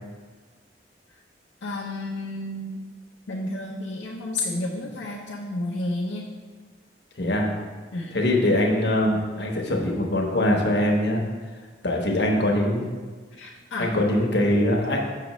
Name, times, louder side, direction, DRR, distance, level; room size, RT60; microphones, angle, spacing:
voice 1, 1.6-2.8 3.3-6.2 7.9-8.1 13.4-14.1, left 2 dB, 85° left, -4 dB, 0.7 m, -31 dB
voice 2, 7.2-7.5 8.1-11.2 11.8-12.8 13.8-15.0, left 1 dB, 65° left, 0 dB, 1.0 m, -22 dB
6.7 x 6.1 x 3.0 m, 1.5 s
head